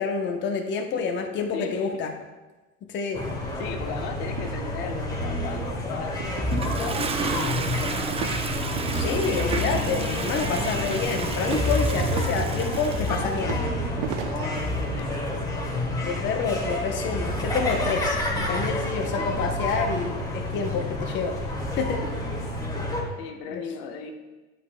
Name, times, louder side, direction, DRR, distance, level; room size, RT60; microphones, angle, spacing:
voice 1, 0.0-2.1 2.8-3.2 8.9-13.6 14.4-14.5 16.0-21.4 21.8-22.0 23.5-23.6, left 5 dB, 40° left, 3 dB, 0.8 m, -28 dB
voice 2, 1.5-1.9 3.6-8.0 8.9-9.4 14.9-15.1 23.2-24.1, left 6 dB, 70° left, 4 dB, 1.1 m, -37 dB
sound 1, 3.1-23.0, left 1 dB, 10° left, 1.6 m, -29 dB
sound 2, 3.9-15.2, right 9 dB, 60° right, 0.7 m, -39 dB
Toilet flush, 6.5-13.3, right 4 dB, 20° right, 0.5 m, -32 dB
9.8 x 8.7 x 2.2 m, 1.2 s
supercardioid pair, 105°, 30 cm